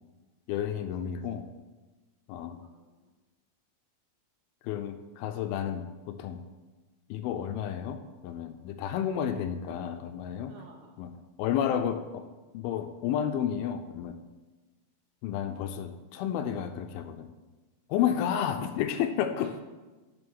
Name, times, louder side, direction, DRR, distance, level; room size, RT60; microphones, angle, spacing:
voice 1, 0.5-1.4 2.3-2.6 4.6-6.4 7.1-10.6 11.0-11.1 11.4-12.3 12.5-14.2 15.2-17.3 17.9-19.6, left 9 dB, 80° left, 8 dB, 2.3 m, -31 dB
voice 2, 1.0-1.5 2.6-3.1 10.5-11.0 19.3-19.6, right 4 dB, 75° right, 2 dB, 2.2 m, -54 dB
7.0 x 6.5 x 6.2 m, 1.2 s
omnidirectional pair, 4.5 m